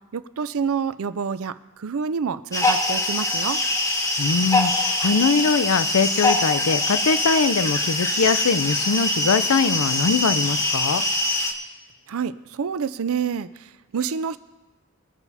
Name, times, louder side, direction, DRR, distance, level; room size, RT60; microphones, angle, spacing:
voice 1, 0.1-3.6 12.1-14.4, right 6 dB, 65° right, 15 dB, 0.4 m, -28 dB
sound 1, 2.5-11.5, left 2 dB, 15° left, 1.1 m, -23 dB
voice 2, 4.2-11.0, left 5 dB, 65° left, 14 dB, 0.5 m, -22 dB
21.0 x 7.1 x 4.1 m, 1.1 s
head